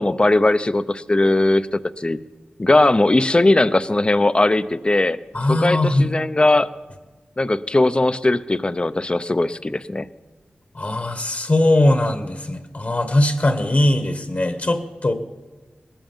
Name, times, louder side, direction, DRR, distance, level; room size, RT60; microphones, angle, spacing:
voice 1, 0.0-2.2 2.6-5.2 5.5-6.7 7.4-10.1, left 2 dB, 25° left, 14 dB, 0.5 m, -19 dB
voice 2, 5.3-6.1 10.7-15.1, left 1 dB, 45° left, 8 dB, 1.2 m, -20 dB
19.0 x 9.1 x 7.3 m, 1.3 s
wide cardioid pair, 70°, 4 cm